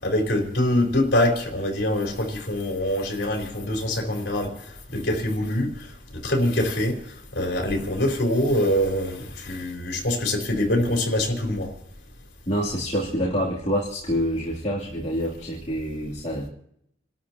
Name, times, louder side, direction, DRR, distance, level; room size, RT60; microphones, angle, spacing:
voice 1, 0.0-11.7, left 1 dB, 65° left, 1 dB, 3.9 m, -24 dB
voice 2, 12.5-16.5, equal, 35° left, -7 dB, 3.1 m, -27 dB
30.0 x 13.0 x 3.0 m, 0.75 s
head